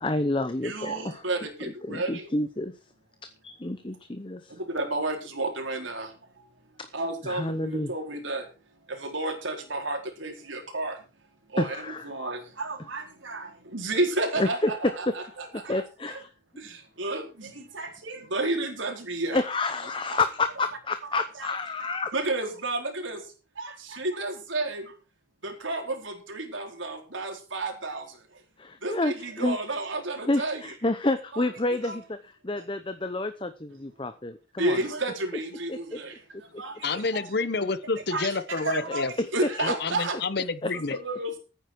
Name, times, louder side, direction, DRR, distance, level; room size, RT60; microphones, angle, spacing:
voice 1, 0.0-1.2 1.8-2.7 3.4-4.5 6.8-6.9 7.2-7.9 11.6-12.1 14.4-15.1 15.5-16.3 19.3-22.1 28.6-29.6 30.3-34.8 35.7-36.0 38.9-39.0 40.6-40.7, left 2 dB, 25° left, 0.8 m, -29 dB
voice 2, 0.6-2.3 4.7-6.1 6.9-8.4 8.9-11.0 11.5-15.8 16.1-16.2 16.6-19.4 21.1-21.5 21.8-23.2 23.6-24.8 25.4-28.0 28.8-30.7 31.3-31.5 31.8-32.0 34.6-36.1 36.6-37.3 38.1-39.1 39.3-40.2 40.7-41.4, right 2 dB, 75° right, 4.3 m, -31 dB
voice 3, 36.8-39.1 39.6-41.0, left 4 dB, 55° left, 1.0 m, -29 dB
14.5 x 9.3 x 4.6 m
head